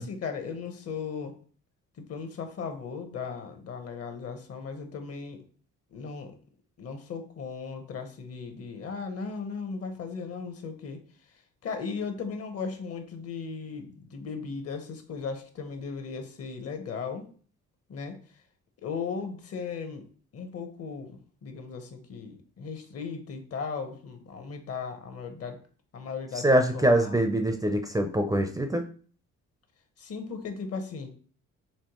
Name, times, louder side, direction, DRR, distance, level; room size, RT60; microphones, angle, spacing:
voice 1, 0.0-1.4 2.0-5.4 5.9-6.4 6.8-11.0 11.6-17.3 17.9-18.2 18.8-20.1 20.3-25.6 25.9-27.2 30.0-31.1, left 5 dB, 55° left, 7 dB, 0.9 m, -37 dB
voice 2, 26.4-28.8, right 1 dB, 10° right, 5 dB, 0.5 m, -24 dB
4.4 x 3.0 x 3.0 m, 0.42 s
cardioid pair, 90°, 30 cm